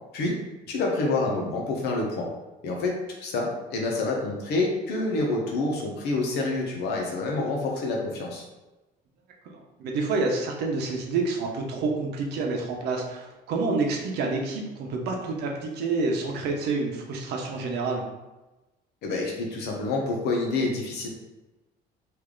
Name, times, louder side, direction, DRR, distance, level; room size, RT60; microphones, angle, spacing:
voice 1, 0.7-2.3 2.6-8.4 19.0-21.1, left 2 dB, 75° left, 0 dB, 1.0 m, -27 dB
voice 2, 9.8-18.0, right 3 dB, 80° right, 1 dB, 0.8 m, -28 dB
3.3 x 2.7 x 3.8 m, 1.1 s
cardioid pair, 110°, 17 cm